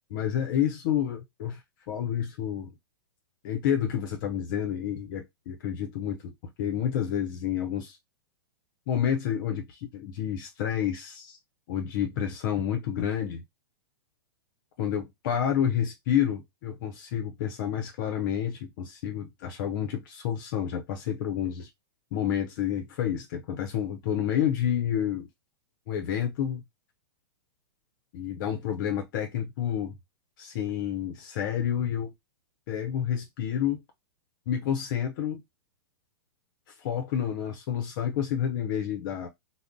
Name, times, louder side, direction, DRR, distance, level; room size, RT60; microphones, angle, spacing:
voice 1, 0.1-1.6 1.9-2.7 3.4-6.3 6.6-8.0 8.9-11.4 11.7-13.4 14.8-21.7 22.1-25.3 25.9-26.6 28.1-30.0 30.4-32.1 32.7-33.8 34.5-35.4 36.8-39.3, left 9 dB, 55° left, 0.6 m, -29 dB
2.4 x 2.0 x 3.5 m
hypercardioid pair, 115°, 13 cm